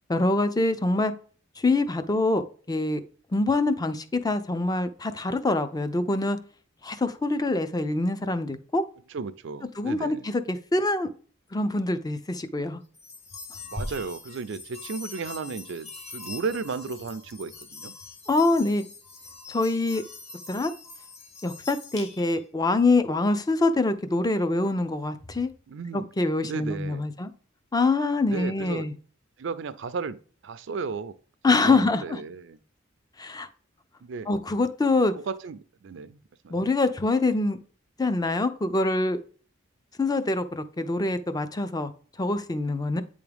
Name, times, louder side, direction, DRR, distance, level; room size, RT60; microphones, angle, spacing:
voice 1, 0.1-1.1 1.6-3.0 3.3-6.4 6.8-8.8 9.8-11.1 11.5-12.8 18.3-18.8 19.5-20.0 20.5-20.7 21.4-25.5 25.9-27.3 27.7-28.9 31.4-32.2 33.2-33.5 34.3-35.1 36.5-37.6 38.0-39.2 40.0-41.9 42.2-43.0, left 2 dB, 20° left, 0.5 m, -25 dB
voice 2, 9.1-10.2 13.6-17.9 25.7-26.1 26.4-27.1 28.3-28.9 29.4-31.2 31.5-32.6 34.0-34.3 35.1-36.2 36.4-36.5, right 4 dB, 65° right, 0.4 m, -34 dB
sound 1, 12.9-22.5, left 3 dB, 35° left, 1.1 m, -42 dB
8.5 x 3.6 x 3.4 m
head